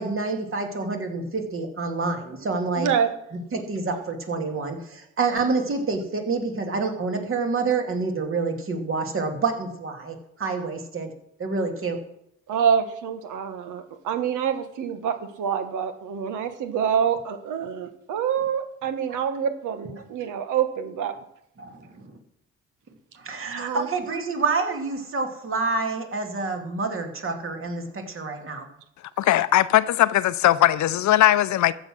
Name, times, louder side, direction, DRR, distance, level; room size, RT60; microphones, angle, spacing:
voice 1, 0.0-2.9 3.3-11.1 11.4-12.0 21.6-22.1 23.2-28.7, right 4 dB, 45° right, 2.4 m, -28 dB
voice 2, 2.8-3.1 12.5-21.1 23.5-23.9, right 8 dB, 85° right, 1.4 m, -26 dB
voice 3, 29.2-31.7, left 13 dB, 70° left, 0.6 m, -19 dB
14.0 x 8.1 x 6.2 m
cardioid pair, 90°, 30 cm